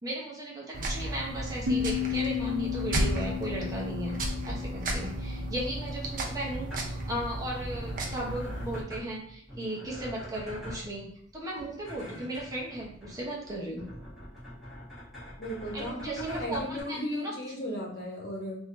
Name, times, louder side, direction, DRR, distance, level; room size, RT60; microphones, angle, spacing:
voice 1, 0.0-4.2 4.4-11.1 11.3-13.9 15.7-17.3, right 1 dB, 20° right, -4 dB, 0.9 m, -36 dB
sound 1, 0.7-8.8, right 1 dB, 45° right, 0.6 m, -34 dB
sound 2, 1.7-6.8, left 9 dB, 75° right, 0.7 m, -35 dB
sound 3, 6.4-16.8, equal, ahead, 1.5 m, -45 dB
voice 2, 15.4-18.6, equal, 55° left, -2 dB, 1.1 m, -35 dB
3.6 x 2.7 x 3.2 m, 0.67 s
head